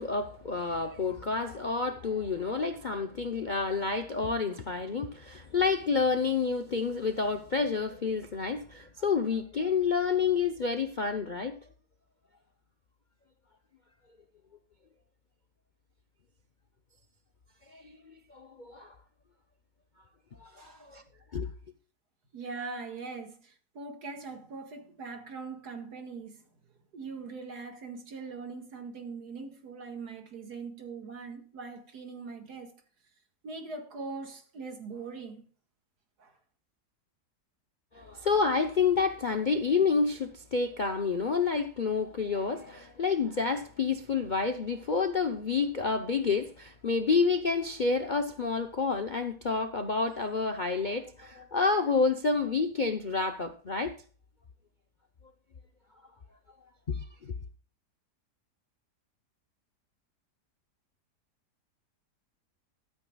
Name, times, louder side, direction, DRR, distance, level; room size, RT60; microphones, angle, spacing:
voice 1, 0.0-11.6 17.7-17.9 18.3-19.0 20.4-21.0 21.3-21.5 37.9-54.0 56.9-57.3, left 4 dB, 45° left, 0.6 m, -29 dB
voice 2, 20.6-20.9 22.3-26.5 26.9-32.7 33.4-35.4 36.2-36.3, right 4 dB, 70° right, 2.3 m, -41 dB
14.0 x 12.5 x 2.3 m
omnidirectional pair, 1.8 m